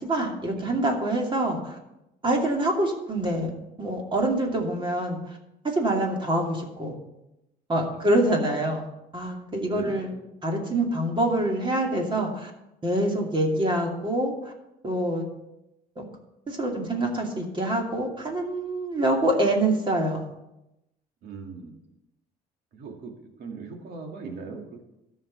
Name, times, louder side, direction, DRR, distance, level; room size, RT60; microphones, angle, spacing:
voice 1, 0.0-1.8 2.2-3.5 3.8-5.2 5.6-7.0 7.7-8.9 9.1-10.1 10.4-12.5 12.8-14.5 14.8-15.3 16.0-16.1 16.5-20.2, right 1 dB, 30° right, 1 dB, 2.5 m, -25 dB
voice 2, 9.7-10.1 21.2-21.7 22.7-23.1 23.4-24.8, right 4 dB, 70° right, 2 dB, 2.3 m, -40 dB
13.0 x 5.8 x 7.2 m, 0.90 s
cardioid pair, 110°, 17 cm